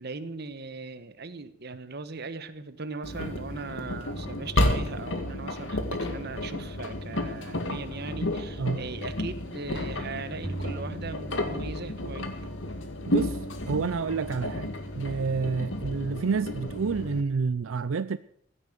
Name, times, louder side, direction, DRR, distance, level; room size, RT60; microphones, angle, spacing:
voice 1, 0.0-12.5, right 3 dB, 55° right, 1.2 m, -39 dB
Engine, 3.0-17.2, left 1 dB, 70° left, 2.1 m, -32 dB
sound 1, 10.4-12.2, right 1 dB, 15° right, 0.5 m, -39 dB
voice 2, 13.1-14.7 15.0-18.2, right 5 dB, 85° right, 0.5 m, -29 dB
16.0 x 8.8 x 8.0 m
head